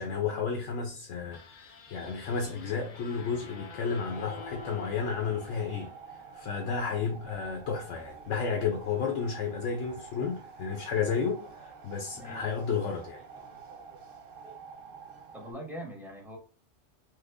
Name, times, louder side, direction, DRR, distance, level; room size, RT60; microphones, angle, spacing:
voice 1, 0.0-5.9 6.3-13.2, left 5 dB, 80° left, 1.0 m, -32 dB
sound 1, 1.3-6.6, left 4 dB, 50° left, 0.6 m, -48 dB
sound 2, 4.0-15.5, right 5 dB, 55° right, 0.7 m, -48 dB
voice 2, 12.1-12.5 15.3-16.4, equal, ahead, 0.7 m, -42 dB
3.2 x 2.0 x 3.5 m
omnidirectional pair, 1.3 m